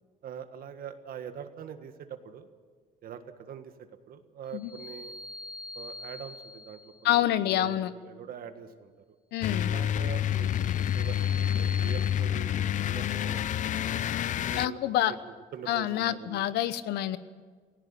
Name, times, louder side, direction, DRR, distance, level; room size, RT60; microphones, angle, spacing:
voice 1, 0.2-2.5 3.0-5.2 5.8-8.9 9.6-13.8 14.4-14.8 15.1-15.2 15.5-16.5, right 8 dB, 60° right, 8 dB, 1.7 m, -44 dB
sound 1, 4.5-7.0 10.0-12.1, left 2 dB, 10° left, 5.5 m, -44 dB
voice 2, 7.0-7.9 9.3-9.7 14.6-15.1 15.7-17.2, left 12 dB, 80° left, 14 dB, 1.0 m, -27 dB
sound 2, 9.4-14.7, left 10 dB, 50° left, 0.5 m, -28 dB
18.0 x 16.5 x 8.9 m, 1.5 s
cardioid pair, 110°, 17 cm